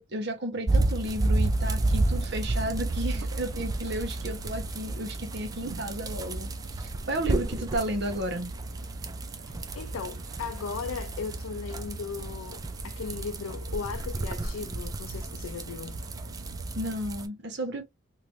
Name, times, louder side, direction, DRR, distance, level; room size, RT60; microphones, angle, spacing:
voice 1, 0.0-8.5 16.8-17.8, right 1 dB, 55° right, 1.1 m, -33 dB
sound 1, 0.7-17.3, right 2 dB, 20° right, 0.3 m, -31 dB
sound 2, 1.5-17.0, right 3 dB, 90° right, 0.6 m, -46 dB
voice 2, 9.5-16.0, left 5 dB, 85° left, 0.4 m, -37 dB
3.2 x 2.9 x 2.4 m
head